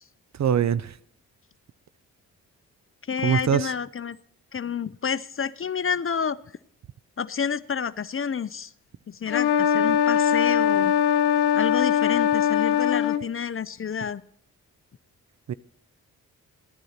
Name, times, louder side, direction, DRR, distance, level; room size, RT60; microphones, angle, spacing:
voice 1, 0.3-1.0 3.2-3.7 15.5-15.6, right 8 dB, 45° right, 0.6 m, -23 dB
voice 2, 3.1-4.2 4.5-6.4 7.2-8.7 9.1-10.9 11.5-14.2, left 7 dB, 35° left, 0.6 m, -29 dB
sound 1, 9.3-13.2, left 8 dB, 90° left, 0.6 m, -21 dB
13.0 x 10.5 x 4.3 m
supercardioid pair, 40°, 38 cm